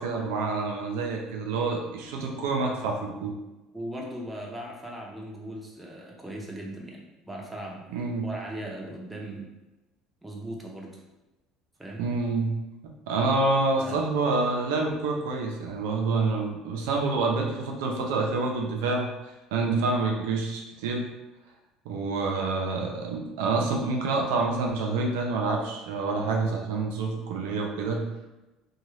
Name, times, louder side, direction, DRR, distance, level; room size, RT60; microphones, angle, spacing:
voice 1, 0.0-3.4 7.9-8.3 12.0-12.5 12.8-19.1 19.5-21.1 21.8-28.1, right 3 dB, 90° right, 1 dB, 0.6 m, -27 dB
voice 2, 3.7-7.8 8.2-9.5 10.2-11.0 11.8-12.0 13.8-14.0, right 1 dB, 10° right, -2 dB, 0.7 m, -38 dB
2.7 x 2.3 x 3.1 m, 1.0 s
supercardioid pair, 110°, 0 cm